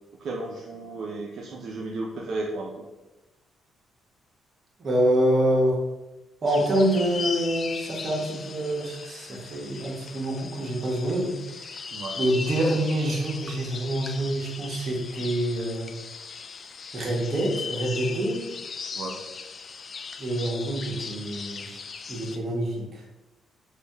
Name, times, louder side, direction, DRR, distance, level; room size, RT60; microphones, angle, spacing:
voice 1, 0.2-2.9 11.9-12.2 18.9-19.2, right 2 dB, 65° right, -1 dB, 0.5 m, -34 dB
voice 2, 4.8-5.8 6.4-11.9 12.2-15.9 16.9-18.4 20.2-21.8 22.1-23.0, right 1 dB, 45° right, -2 dB, 1.2 m, -26 dB
sound 1, 6.5-22.4, left 5 dB, 45° left, 0.3 m, -38 dB
3.3 x 2.7 x 4.5 m, 1.0 s
cardioid pair, 90°, 0 cm